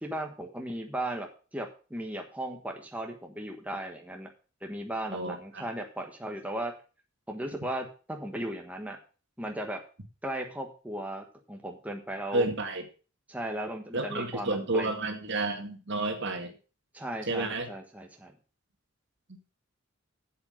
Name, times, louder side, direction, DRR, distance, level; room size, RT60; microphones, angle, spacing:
voice 1, 0.0-4.3 4.6-6.7 7.3-9.0 9.4-9.8 10.2-12.4 13.3-15.0 16.9-18.3, right 1 dB, 5° right, 2 dB, 1.3 m, -36 dB
voice 2, 5.1-5.6 12.3-12.8 13.9-16.5 17.3-17.7, right 2 dB, 55° right, 5 dB, 1.9 m, -30 dB
8.1 x 7.8 x 6.4 m, 0.36 s
head